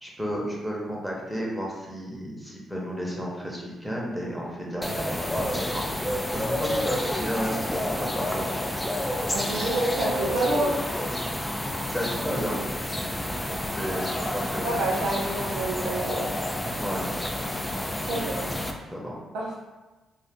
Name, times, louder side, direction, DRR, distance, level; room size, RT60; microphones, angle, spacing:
voice 1, 0.0-8.4 11.6-12.6 13.4-14.8 16.8-17.1 17.8-18.3 18.9-19.2, equal, ahead, -3 dB, 0.9 m, -33 dB
sound 1, 4.8-18.7, left 1 dB, 15° left, 0.4 m, -29 dB
voice 2, 9.3-10.8 14.6-16.3 18.1-18.5 19.3-19.6, right 2 dB, 85° right, -4 dB, 0.5 m, -28 dB
2.5 x 2.4 x 3.5 m, 1.2 s
supercardioid pair, 55°, 0 cm